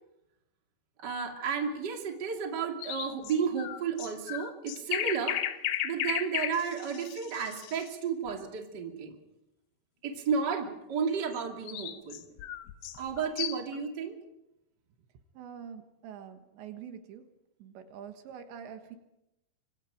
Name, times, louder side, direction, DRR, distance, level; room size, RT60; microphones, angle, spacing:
voice 1, 1.0-5.4 5.8-9.2 10.0-12.2 12.9-14.2, right 6 dB, 30° right, 2 dB, 2.5 m, -32 dB
sound 1, 2.8-7.9 11.3-13.8, left 12 dB, 75° left, 3.3 m, -35 dB
voice 2, 15.4-17.2 17.6-19.0, right 8 dB, 80° right, 7 dB, 3.7 m, -45 dB
25.0 x 25.0 x 5.1 m, 0.90 s
omnidirectional pair, 5.2 m